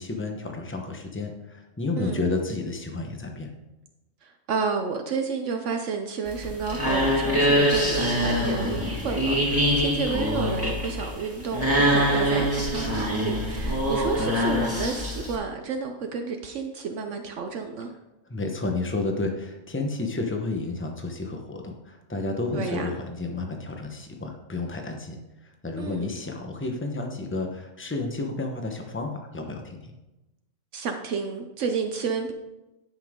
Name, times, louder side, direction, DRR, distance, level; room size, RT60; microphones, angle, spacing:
voice 1, 0.0-3.5 18.3-29.9, left 3 dB, 10° left, 3 dB, 0.8 m, -31 dB
voice 2, 4.2-17.9 22.5-23.0 25.8-26.2 30.7-32.3, right 5 dB, 70° right, 5 dB, 1.0 m, -31 dB
sound 1, 6.3-15.4, equal, 10° right, 1.7 m, -24 dB
10.5 x 5.8 x 3.6 m, 1.0 s
omnidirectional pair, 1.3 m